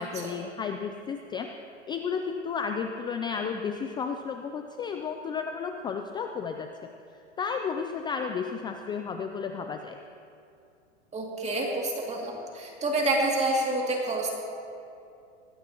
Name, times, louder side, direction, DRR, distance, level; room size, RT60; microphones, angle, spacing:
voice 1, 0.0-1.5 1.9-6.7 7.4-10.0, left 6 dB, 15° left, 5 dB, 0.3 m, -32 dB
voice 2, 11.1-14.3, right 2 dB, 20° right, -2 dB, 2.5 m, -28 dB
19.5 x 16.5 x 3.0 m, 2.6 s
hypercardioid pair, 120°, 36 cm